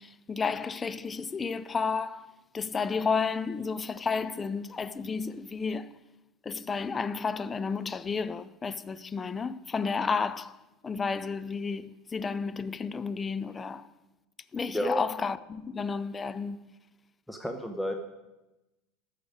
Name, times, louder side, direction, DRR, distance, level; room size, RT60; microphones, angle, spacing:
voice 1, 0.0-6.0 6.4-10.6 10.8-13.9 14.5-16.7, left 5 dB, 20° left, 0.5 m, -32 dB
voice 2, 17.3-17.9, equal, 5° left, 0.9 m, -31 dB
13.5 x 6.6 x 5.1 m
figure-of-eight pair, 75°, 0 cm